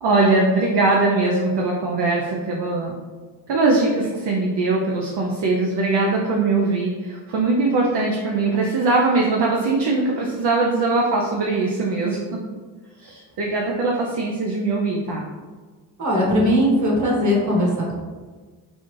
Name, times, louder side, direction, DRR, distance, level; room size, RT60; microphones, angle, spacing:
voice 1, 0.0-3.0 3.5-12.4 13.0-15.3, right 3 dB, 60° right, -2 dB, 0.7 m, -21 dB
voice 2, 16.0-18.0, equal, 40° right, -3 dB, 1.5 m, -19 dB
4.1 x 2.4 x 3.2 m, 1.4 s
supercardioid pair, 50°, 47 cm